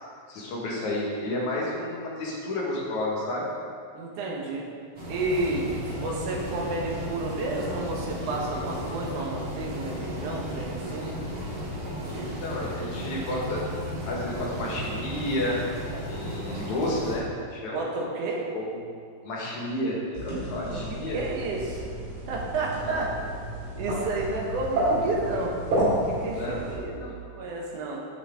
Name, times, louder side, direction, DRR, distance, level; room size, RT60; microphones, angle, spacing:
voice 1, 0.3-3.5 5.9-6.0 12.2-13.6 14.0-15.6 16.1-17.8 18.5-18.6 19.2-21.2 22.8-23.0 26.3-26.6 26.9-27.2, left 1 dB, 75° left, -4 dB, 3.0 m, -31 dB
voice 2, 3.9-4.7 5.1-11.2 12.1-12.4 17.7-18.5 20.9-21.8 22.3-23.1 23.8-25.5 26.0-28.1, right 2 dB, 90° right, -1 dB, 2.8 m, -31 dB
sound 1, 5.0-17.2, equal, 45° right, 2.7 m, -34 dB
sound 2, 20.1-26.8, right 1 dB, 70° right, 3.8 m, -30 dB
12.5 x 6.2 x 3.7 m, 2.2 s
omnidirectional pair, 3.4 m